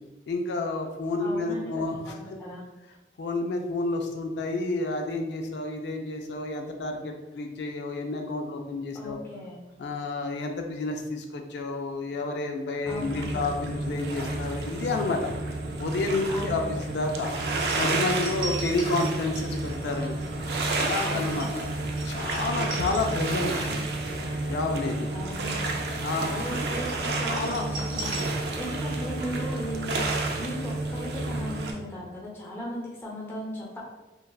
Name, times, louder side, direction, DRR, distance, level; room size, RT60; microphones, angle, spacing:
voice 1, 0.3-2.2 3.2-9.2 9.8-15.3 15.8-17.3 17.8-20.1 20.8-21.8 22.0-23.9 24.4-25.1 26.0-26.3 27.0-27.7, left 3 dB, 80° left, 3 dB, 0.3 m, -30 dB
voice 2, 1.2-2.6 8.9-9.6 12.8-13.4 16.3-16.7 21.0-21.4 25.1-25.7 26.2-30.0 30.4-33.8, equal, 15° left, -6 dB, 0.6 m, -37 dB
sound 1, 12.9-31.7, right 2 dB, 70° right, 0.4 m, -30 dB
sound 2, 18.0-23.6 24.0-24.2 27.4-28.9 29.2-29.3, right 2 dB, 50° right, 0.8 m, -39 dB
3.2 x 2.3 x 2.3 m, 1.1 s
head